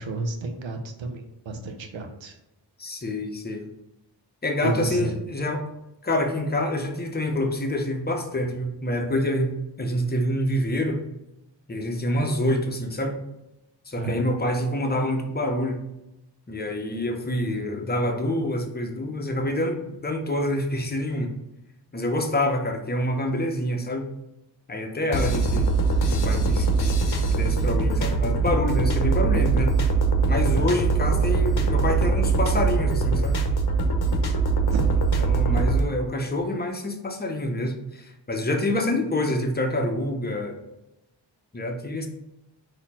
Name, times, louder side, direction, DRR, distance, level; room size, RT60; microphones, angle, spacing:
voice 1, 0.0-2.4 4.6-5.1 14.0-14.3 30.5-30.8 34.7-35.0, right 2 dB, 80° right, 5 dB, 0.8 m, -31 dB
voice 2, 2.8-3.7 4.4-5.6 6.0-9.5 9.8-11.0 11.7-13.2 13.9-15.8 16.5-21.3 21.9-24.1 24.7-25.7 26.1-27.0 27.3-29.7 30.3-33.4 35.2-40.6 41.5-42.1, left 1 dB, 20° left, 3 dB, 0.7 m, -27 dB
sound 1, 25.1-35.8, right 4 dB, 60° left, 0.8 m, -22 dB
4.2 x 2.9 x 4.2 m, 0.90 s
wide cardioid pair, 85°, 44 cm